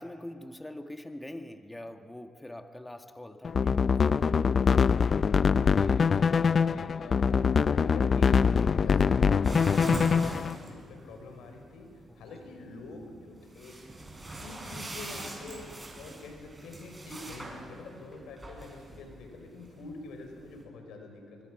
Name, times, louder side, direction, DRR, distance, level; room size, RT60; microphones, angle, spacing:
voice 1, 0.0-4.3 12.1-12.4, left 1 dB, 15° left, 7 dB, 1.9 m, -44 dB
sound 1, 3.4-10.5, left 6 dB, 50° left, 0.5 m, -24 dB
voice 2, 5.7-13.8 14.3-21.5, left 3 dB, 85° left, 4 dB, 4.7 m, -46 dB
sound 2, 9.4-20.6, right 2 dB, 20° right, 6.7 m, -41 dB
24.5 x 23.0 x 6.1 m, 2.5 s
supercardioid pair, 60°, 0 cm